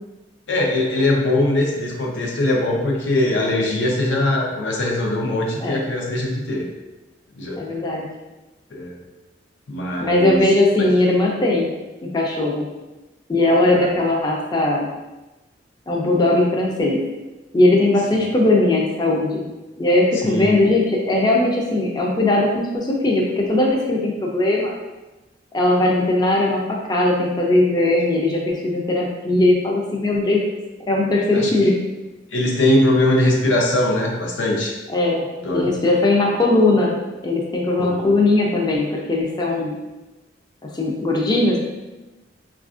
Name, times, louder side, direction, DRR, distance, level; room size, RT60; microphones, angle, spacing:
voice 1, 0.5-6.7 7.4-7.7 8.7-9.0 9.7-10.4 13.6-13.9 20.2-20.6 31.3-31.5 32.3-34.7 35.4-35.8 37.8-38.1, left 1 dB, 90° left, -1 dB, 0.6 m, -21 dB
voice 2, 7.6-8.1 10.0-11.7 12.0-12.7 13.3-14.9 15.9-17.0 17.5-19.4 19.8-24.7 25.5-30.4 30.9-31.8 34.9-36.9 37.2-39.7 40.7-41.6, left 2 dB, 25° left, -1 dB, 0.4 m, -19 dB
4.1 x 2.4 x 2.4 m, 1.1 s
head